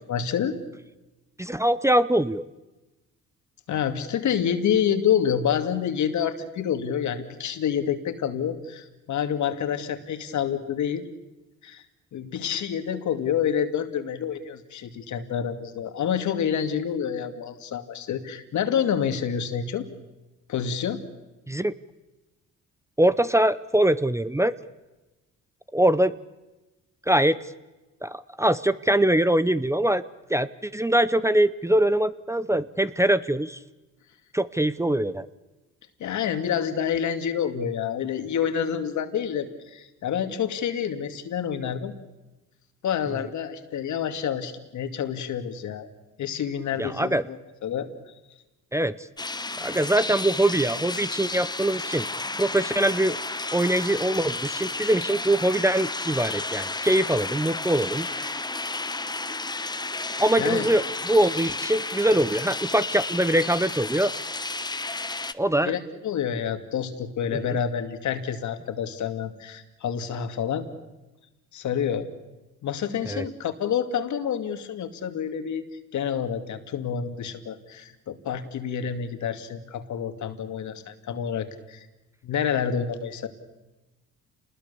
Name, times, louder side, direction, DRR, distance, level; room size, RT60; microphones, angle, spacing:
voice 1, 0.1-0.6 3.7-11.1 11.6-11.8 12.1-19.9 20.5-21.0 36.0-41.9 42.8-45.9 46.2-47.9 60.4-60.7 65.6-70.7 71.5-72.1 72.6-75.7 75.9-81.9 82.2-83.3, left 8 dB, 70° left, 8 dB, 2.4 m, -28 dB
voice 2, 1.4-2.4 21.5-21.7 23.0-24.6 25.7-26.1 27.1-27.4 28.0-30.0 30.3-33.6 34.3-35.3 46.8-47.2 48.7-48.9 49.6-52.1 52.4-53.2 53.5-58.4 60.2-64.1 65.3-65.8 73.1-73.2, right 1 dB, 10° right, 16 dB, 0.7 m, -23 dB
sound 1, 49.2-65.3, left 3 dB, 15° left, 1.1 m, -32 dB
28.5 x 20.5 x 7.0 m, 1.1 s
cardioid pair, 90°, 30 cm